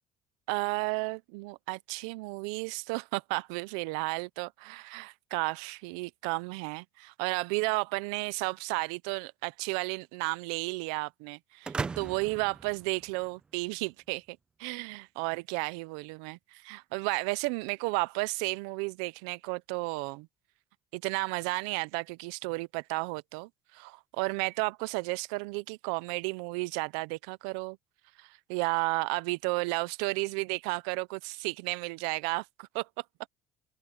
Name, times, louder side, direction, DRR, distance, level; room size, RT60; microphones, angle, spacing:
voice 1, 0.5-20.3 20.9-27.8 28.2-32.9, right 26 dB, 80° right, 0.8 m, -33 dB
sound 1, 11.6-13.6, right 5 dB, 30° right, 0.9 m, -38 dB
open air
hypercardioid pair, 65°, 3 cm